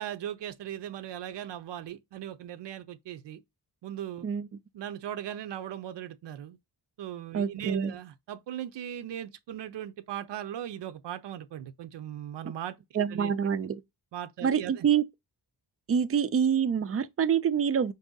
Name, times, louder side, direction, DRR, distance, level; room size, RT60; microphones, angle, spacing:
voice 1, 0.0-3.4 3.8-4.3 4.7-6.6 7.0-13.3 14.1-14.9, right 11 dB, 80° right, 0.6 m, -38 dB
voice 2, 7.3-7.9 12.9-13.8 14.4-15.0 15.9-17.9, right 7 dB, 35° right, 0.4 m, -26 dB
5.3 x 2.6 x 3.8 m
wide cardioid pair, 140°, 42 cm